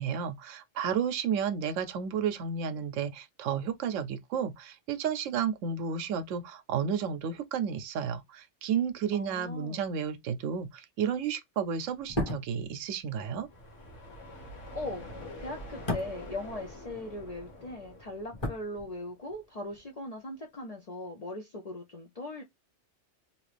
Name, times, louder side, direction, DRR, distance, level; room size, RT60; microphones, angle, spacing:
voice 1, 0.0-13.5, right 7 dB, 85° right, 0.9 m, -32 dB
voice 2, 9.1-9.8 14.7-15.1 15.4-22.4, left 1 dB, 55° left, 0.4 m, -39 dB
sound 1, 12.0-17.3 17.5-19.4 19.6-19.8, left 1 dB, 25° left, 0.9 m, -38 dB
sound 2, 13.5-19.2, left 1 dB, 80° left, 1.5 m, -46 dB
2.9 x 2.4 x 3.2 m
omnidirectional pair, 1.3 m